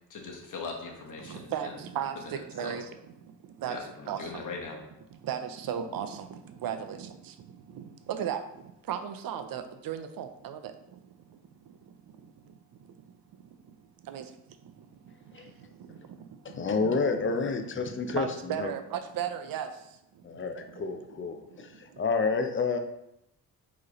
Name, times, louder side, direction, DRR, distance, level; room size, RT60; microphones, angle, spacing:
voice 1, 0.1-1.7 2.1-2.3 2.6-2.7 3.7-4.8, left 4 dB, 50° left, 0 dB, 1.1 m, -40 dB
voice 2, 1.2-4.5 5.1-13.1 13.4-14.4 14.6-17.7 18.0-22.0, right 9 dB, 60° right, 8 dB, 0.6 m, -38 dB
voice 3, 16.4-18.7 20.2-22.8, left 4 dB, 30° left, 7 dB, 0.5 m, -30 dB
4.6 x 3.2 x 3.0 m, 0.83 s
cardioid pair, 80°, 39 cm